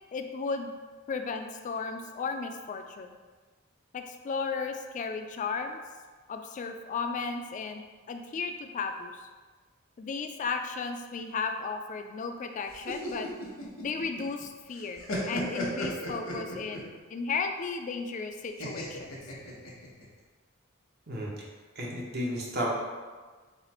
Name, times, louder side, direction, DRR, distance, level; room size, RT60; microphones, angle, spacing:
voice 1, 0.1-0.7 1.1-3.2 3.9-5.8 6.3-9.3 10.0-13.3 13.8-19.1, left 4 dB, 35° left, 6 dB, 0.3 m, -34 dB
sound 1, 12.7-14.4 14.7-16.9 18.6-20.0, left 1 dB, 90° left, 1.1 m, -35 dB
voice 2, 21.8-22.7, equal, 50° right, -3 dB, 0.9 m, -32 dB
4.0 x 2.5 x 4.2 m, 1.4 s
head